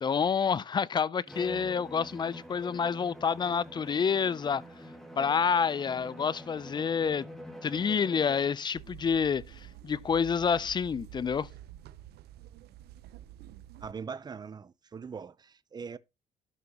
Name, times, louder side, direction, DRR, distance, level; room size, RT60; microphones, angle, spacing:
voice 1, 0.0-4.6 5.2-7.3 7.6-9.4 9.8-11.5, left 6 dB, 25° left, 0.4 m, -28 dB
Bowed string instrument, 1.3-8.7, equal, ahead, 2.1 m, -46 dB
sound 1, 8.7-13.9, right 12 dB, 75° right, 0.8 m, -49 dB
voice 2, 13.8-16.0, right 6 dB, 25° right, 0.6 m, -41 dB
13.0 x 5.9 x 2.9 m
cardioid pair, 110°, 17 cm